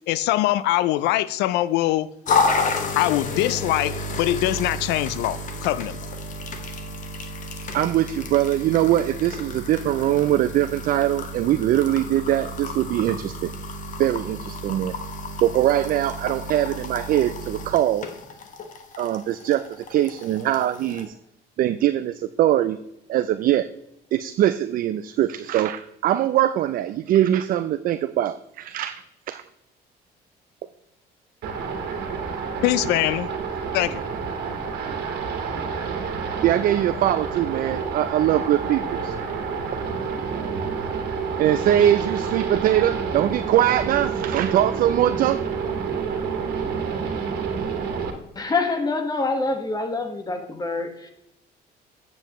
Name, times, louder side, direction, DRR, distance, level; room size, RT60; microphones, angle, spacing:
voice 1, 0.1-2.1 2.9-6.1 32.6-33.3 33.7-34.0, left 15 dB, 90° left, 0.4 m, -23 dB
sound 1, 2.3-21.1, left 3 dB, 50° left, 1.3 m, -31 dB
voice 2, 7.7-13.5 14.0-14.9 15.4-18.1 19.0-21.1 21.6-22.8 23.1-23.7 24.1-29.0 29.3-29.4 36.4-39.1 41.4-45.5, right 12 dB, 55° right, 0.4 m, -22 dB
sound 2, 31.4-48.1, right 5 dB, 75° right, 1.7 m, -29 dB
voice 3, 48.3-51.1, left 3 dB, 25° left, 1.5 m, -26 dB
8.9 x 7.6 x 3.0 m
cardioid pair, 110°, 17 cm